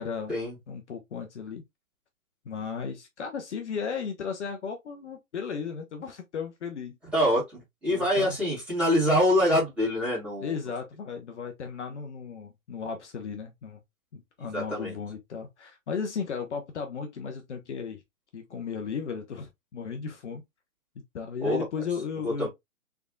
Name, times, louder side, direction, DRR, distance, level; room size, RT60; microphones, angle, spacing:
voice 1, 0.0-0.3 0.7-1.6 2.4-7.0 7.9-8.4 10.4-13.8 14.1-18.0 18.3-20.4 21.1-22.5, left 6 dB, 55° left, 0.9 m, -35 dB
voice 2, 7.1-10.6 14.4-14.9 21.4-21.6 22.2-22.5, equal, 5° right, 2.3 m, -25 dB
3.5 x 3.4 x 2.4 m
hypercardioid pair, 145°, 41 cm